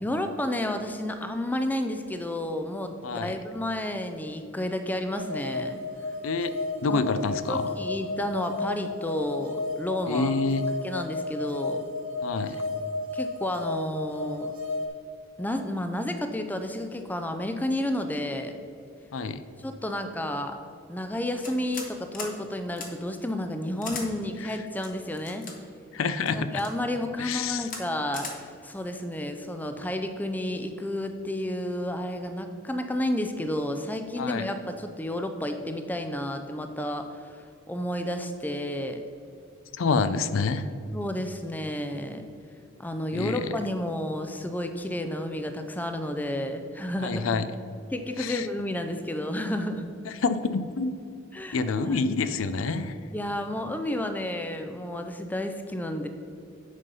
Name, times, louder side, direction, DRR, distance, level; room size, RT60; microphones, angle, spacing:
voice 1, 0.0-5.8 6.9-7.0 7.5-10.3 10.8-11.8 13.1-14.5 15.4-18.5 19.6-20.6 20.9-25.4 26.3-37.4 37.7-39.0 39.8-40.0 40.9-42.3 42.8-47.2 47.9-49.9 51.3-52.0 53.1-56.1, left 1 dB, 10° left, 7 dB, 0.4 m, -31 dB
sound 1, 5.1-14.9, left 3 dB, 80° right, 1.5 m, -33 dB
voice 2, 6.8-7.7 10.1-10.6 12.2-12.6 19.1-19.4 24.5-24.6 25.9-26.5 27.2-27.7 34.2-34.5 39.8-40.7 43.1-43.4 47.0-47.5 48.2-48.5 50.1-50.9 51.5-52.9, left 4 dB, 75° left, 12 dB, 0.5 m, -27 dB
sound 2, 21.4-21.9 22.1-22.3 22.8-22.9 23.8-24.1 24.8-25.5 26.3-26.7 27.2-27.4 27.7-27.8 28.1-28.4, left 4 dB, 40° left, 1.2 m, -37 dB
8.2 x 5.5 x 5.5 m, 2.6 s
head